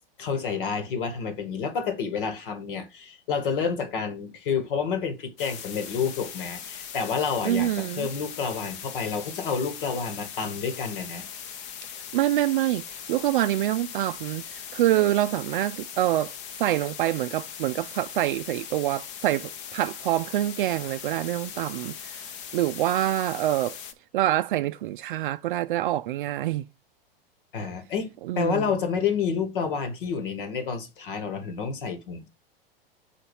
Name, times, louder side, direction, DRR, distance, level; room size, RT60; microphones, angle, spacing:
voice 1, 0.2-11.2 27.5-32.3, left 6 dB, 60° left, 1.7 m, -29 dB
sound 1, 5.4-23.9, left 8 dB, 35° left, 0.9 m, -40 dB
voice 2, 7.4-8.1 12.1-16.3 16.6-23.8 24.1-26.6 28.3-28.7, right 14 dB, 60° right, 0.4 m, -26 dB
5.1 x 4.2 x 5.2 m
hypercardioid pair, 100°, 30 cm